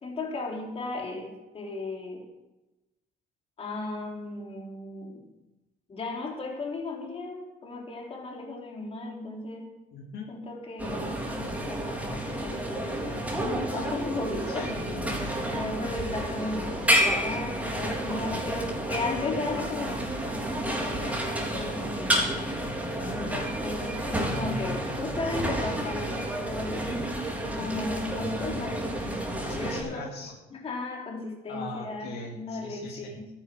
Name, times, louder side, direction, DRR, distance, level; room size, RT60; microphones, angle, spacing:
voice 1, 0.0-2.3 3.6-5.3 5.9-9.8 10.3-14.7 15.4-22.6 23.1-27.0 27.6-29.3 29.5-30.1 30.5-33.3, left 3 dB, 35° left, 1 dB, 3.5 m, -36 dB
voice 2, 9.9-10.4 14.5-15.6 23.0-23.5 29.4-30.4 31.5-33.1, left 3 dB, 75° left, 1 dB, 2.4 m, -40 dB
sound 1, 10.8-29.8, right 1 dB, 5° right, 4.2 m, -30 dB
13.0 x 10.5 x 6.2 m, 1.0 s
cardioid pair, 110°, 17 cm